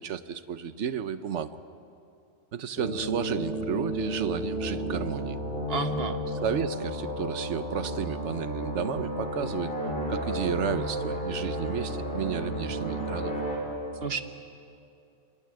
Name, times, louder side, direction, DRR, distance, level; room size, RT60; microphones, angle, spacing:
voice 1, 0.0-1.6 2.5-5.4 6.4-9.7 10.1-13.3, right 8 dB, 75° right, 12 dB, 1.2 m, -32 dB
sound 1, 2.8-13.6, equal, 50° left, 4.7 m, -32 dB
voice 2, 5.7-6.2 14.0-14.2, right 5 dB, 55° right, 9 dB, 1.4 m, -31 dB
27.5 x 27.5 x 7.7 m, 2.6 s
omnidirectional pair, 1.2 m